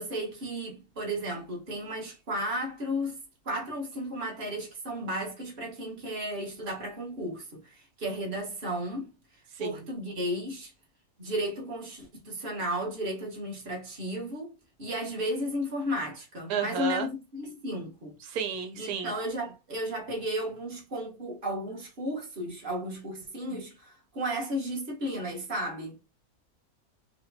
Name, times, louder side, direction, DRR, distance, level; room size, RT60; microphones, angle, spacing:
voice 1, 0.0-3.2 3.4-9.1 9.6-10.7 11.2-14.5 14.8-18.2 18.8-26.0, equal, 40° right, 1.5 m, -34 dB
voice 2, 9.5-9.9 16.5-17.1 18.2-19.1, right 6 dB, 85° right, 1.2 m, -32 dB
5.0 x 2.2 x 2.7 m
omnidirectional pair, 1.6 m